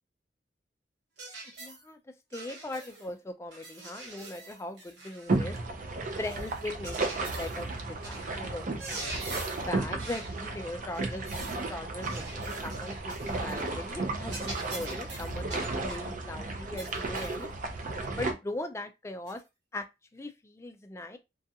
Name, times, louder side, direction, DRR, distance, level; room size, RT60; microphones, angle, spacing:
sound 1, 1.2-1.8 2.3-3.1 3.5-5.4 6.2-7.6 8.0-8.3 8.6-9.7 10.0-10.4 10.9-11.6 12.0-13.6 13.9-14.0 14.3-16.1 16.8-17.4 18.0-18.1 19.3-19.4, right 2 dB, 75° right, 1.0 m, -43 dB
voice 1, 1.4-5.6 6.2-17.5 18.1-19.4 19.7-19.9 20.1-21.2, left 2 dB, 15° left, 0.3 m, -40 dB
sound 2, 5.3-18.3, right 3 dB, 45° right, 0.5 m, -34 dB
2.4 x 2.3 x 2.7 m
head